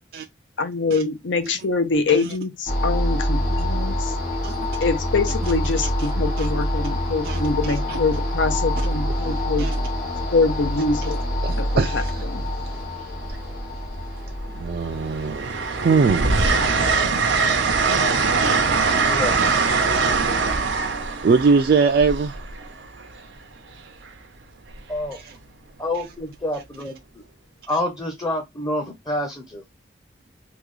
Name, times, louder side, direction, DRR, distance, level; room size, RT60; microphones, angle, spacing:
voice 1, 0.6-4.1 4.8-9.7 10.3-11.2 11.6-12.4, left 4 dB, 90° left, 0.7 m, -24 dB
sound 1, 2.7-16.8, equal, 50° left, 1.5 m, -26 dB
voice 2, 11.4-12.1 12.6-12.8 14.5-15.5 15.8-16.4 18.3-18.6 21.2-22.3 25.1-25.4, right 5 dB, 55° right, 0.3 m, -22 dB
Train, 11.7-11.9 13.2-13.9 14.4-23.1 24.7-25.0, right 4 dB, 85° right, 0.7 m, -22 dB
voice 3, 25.8-27.0 27.7-29.6, left 1 dB, 20° left, 0.6 m, -27 dB
3.5 x 2.3 x 3.1 m
head